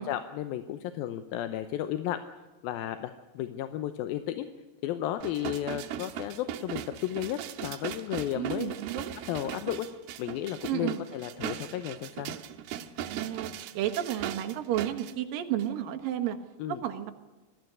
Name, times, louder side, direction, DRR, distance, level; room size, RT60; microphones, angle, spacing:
voice 1, 0.0-2.2 2.6-4.5 4.8-8.7 9.3-9.9 10.2-12.4 16.6-16.8, left 12 dB, 80° left, 10 dB, 2.5 m, -33 dB
sound 1, 5.2-15.1 15.6-15.7, right 10 dB, 85° right, 3.0 m, -39 dB
voice 2, 8.4-9.1 10.7-11.0 13.1-16.4 16.7-17.1, right 11 dB, 70° right, 7 dB, 2.8 m, -32 dB
21.0 x 14.0 x 9.6 m, 1.2 s
omnidirectional pair, 4.5 m